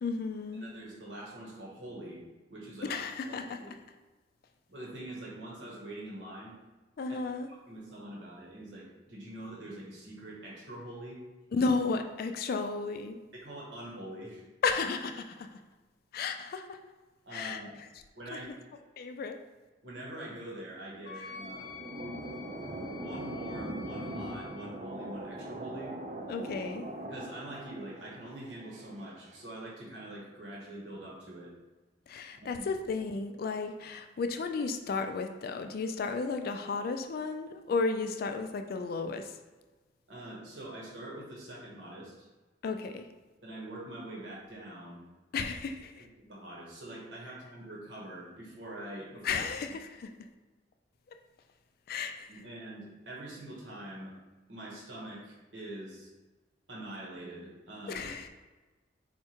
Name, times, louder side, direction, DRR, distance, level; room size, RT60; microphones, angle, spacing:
voice 1, 0.0-0.7 2.8-3.8 7.0-7.5 11.5-13.2 14.6-15.5 16.1-16.8 17.3-17.6 18.3-18.4 19.0-19.4 26.3-26.9 32.1-39.4 42.6-43.1 45.3-46.1 49.2-50.1 51.9-52.3 57.9-58.3, left 4 dB, 55° left, 6 dB, 0.3 m, -33 dB
voice 2, 0.6-2.2 2.5-2.9 3.2-3.7 4.7-6.6 7.7-11.2 13.3-14.4 17.2-17.8 18.2-18.5 19.8-21.7 22.8-25.9 27.1-31.5 32.4-32.6 40.1-42.3 43.4-45.0 45.9-49.5 52.3-54.1 54.5-56.1 56.7-58.1, right 1 dB, 80° right, -4 dB, 1.2 m, -44 dB
Wind instrument woodwind instrument, 21.0-24.7, left 5 dB, 85° left, 0.8 m, -48 dB
sound 1, 21.0-29.4, right 1 dB, 40° right, 0.4 m, -41 dB
4.6 x 2.2 x 4.4 m, 1.2 s
head